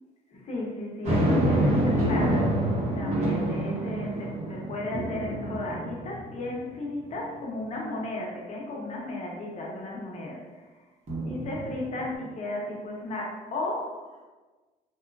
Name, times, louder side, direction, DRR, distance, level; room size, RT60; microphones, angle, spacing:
voice 1, 0.3-10.7 11.2-14.2, left 2 dB, 40° left, -2 dB, 0.7 m, -35 dB
sound 1, 1.0-6.6 7.1-7.2 11.1-12.1, right 1 dB, 40° right, 1.0 m, -27 dB
2.9 x 2.3 x 2.2 m, 1.3 s
cardioid pair, 110°, 17 cm